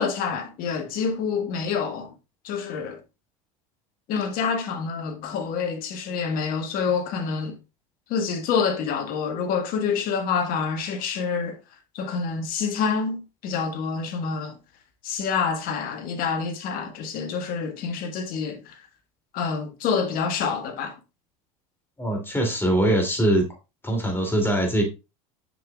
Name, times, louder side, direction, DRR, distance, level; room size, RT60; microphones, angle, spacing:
voice 1, 0.0-2.1 2.4-3.0 4.1-7.6 8.1-11.6 11.9-14.5 15.0-18.8 19.3-20.9, left 6 dB, 60° left, 1.5 m, -27 dB
voice 2, 22.0-23.4 23.8-24.8, right 1 dB, 15° left, 2.8 m, -22 dB
7.6 x 5.7 x 2.4 m
hypercardioid pair, 90°, 17 cm